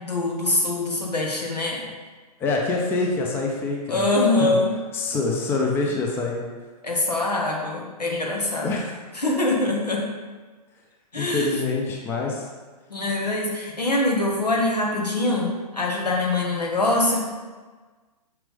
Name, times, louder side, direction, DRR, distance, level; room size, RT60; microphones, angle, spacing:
voice 1, 0.0-1.8 3.9-4.8 6.8-8.8 9.1-10.0 11.1-11.6 12.9-17.2, left 2 dB, 80° left, -1 dB, 1.5 m, -23 dB
voice 2, 2.4-4.1 4.4-4.5 4.9-6.4 8.6-9.0 11.2-12.5, left 3 dB, 10° left, 0 dB, 0.6 m, -25 dB
6.2 x 6.0 x 3.4 m, 1.4 s
figure-of-eight pair, 120°, 21 cm